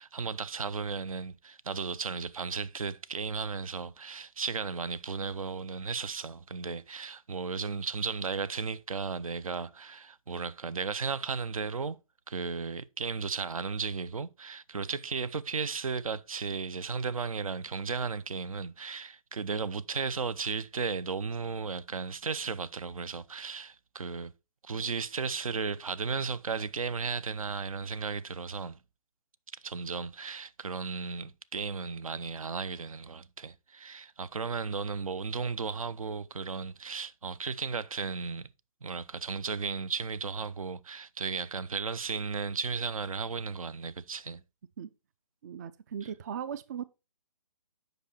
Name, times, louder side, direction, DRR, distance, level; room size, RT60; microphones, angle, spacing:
voice 1, 0.0-12.0 12.3-24.3 24.6-28.8 29.6-38.5 38.8-44.4, right 5 dB, 75° right, 0.6 m, -35 dB
voice 2, 45.4-46.8, right 8 dB, 30° right, 0.3 m, -38 dB
8.1 x 5.2 x 4.2 m
figure-of-eight pair, 140°, 18 cm